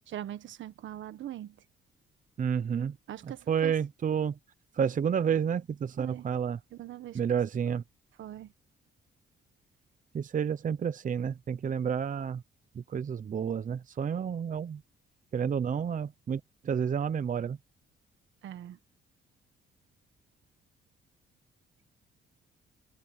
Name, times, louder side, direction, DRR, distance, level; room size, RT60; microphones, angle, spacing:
voice 1, 0.1-1.6 3.1-3.7 6.0-6.2 6.7-7.2 8.2-8.5 18.4-18.8, right 12 dB, 70° right, 1.5 m, -41 dB
voice 2, 2.4-3.0 3.2-4.4 4.7-6.6 7.1-7.8 10.1-12.4 12.8-14.8 15.3-17.6, right 7 dB, 40° right, 0.8 m, -30 dB
cardioid pair, 90°, 20 cm